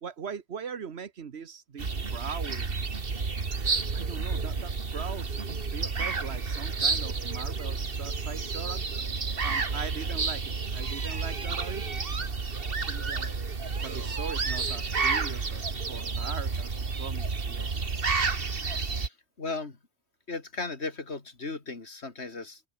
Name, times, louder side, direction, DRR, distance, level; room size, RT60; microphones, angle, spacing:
voice 1, 0.0-2.7 3.9-9.1 9.4-12.3 12.7-13.3 13.8-18.0, right 6 dB, 75° right, 1.5 m, -41 dB
sound 1, 1.8-19.1, right 4 dB, 60° right, 2.0 m, -30 dB
voice 2, 18.9-19.8 20.3-22.6, left 3 dB, 85° left, 3.0 m, -36 dB
open air
omnidirectional pair, 1.1 m